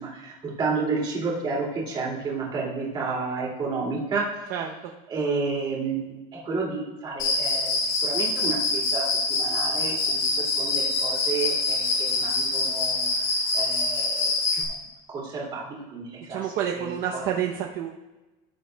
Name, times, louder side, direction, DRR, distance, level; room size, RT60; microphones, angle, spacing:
voice 1, 0.0-4.2 5.1-6.1 6.4-10.3 10.6-13.1 13.5-14.6 15.1-17.2, right 4 dB, 25° right, -3 dB, 2.5 m, -31 dB
Cricket, 7.2-14.6, left 3 dB, 75° left, 3.2 m, -25 dB
voice 2, 16.3-17.9, right 9 dB, 50° right, 1 dB, 0.7 m, -28 dB
17.0 x 7.7 x 2.2 m, 1.1 s
cardioid pair, 180°, 20 cm